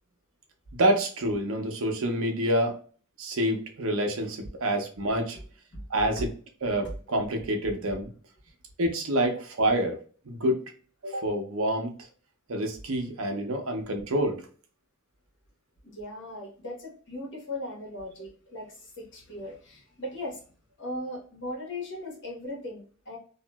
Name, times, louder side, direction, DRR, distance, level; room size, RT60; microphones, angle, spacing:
voice 1, 0.8-2.8 3.2-5.4 5.9-6.3 6.6-8.1 8.8-10.0 10.3-10.6 11.0-11.9 12.5-14.4, right 1 dB, 70° right, 4 dB, 0.7 m, -27 dB
voice 2, 15.8-20.4 20.8-23.2, left 1 dB, 60° left, -2 dB, 1.3 m, -38 dB
2.8 x 2.4 x 2.2 m, 0.41 s
head